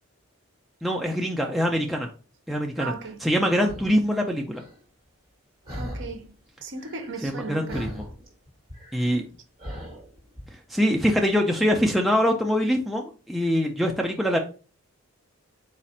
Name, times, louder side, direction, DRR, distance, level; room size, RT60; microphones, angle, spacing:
voice 1, 0.8-2.1 2.5-2.9 3.2-4.6 7.2-8.1 8.9-9.2 10.7-14.4, equal, ahead, 0.3 m, -24 dB
voice 2, 2.8-3.2 5.8-6.3 6.6-8.0, right 4 dB, 55° right, 0.7 m, -36 dB
sound 1, 3.7-4.0 4.5-4.8 5.7-6.3 6.6-7.4 7.7-10.5, equal, 25° right, 1.4 m, -39 dB
4.2 x 2.4 x 4.1 m
head